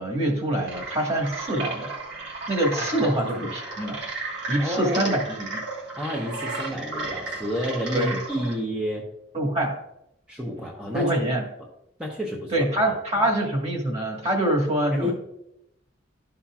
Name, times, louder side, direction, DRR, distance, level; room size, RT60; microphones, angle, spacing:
voice 1, 0.0-1.9 2.5-5.6 7.9-8.2 9.3-9.8 10.9-11.4 12.5-15.1, right 1 dB, 35° right, 0 dB, 1.6 m, -25 dB
sound 1, 0.6-8.5, right 3 dB, 65° right, 1.6 m, -34 dB
voice 2, 2.7-3.1 3.4-3.5 4.6-5.2 6.0-9.0 10.3-11.1 12.0-12.9 14.9-15.1, equal, 5° right, -2 dB, 0.8 m, -30 dB
12.5 x 5.6 x 2.4 m, 0.84 s
head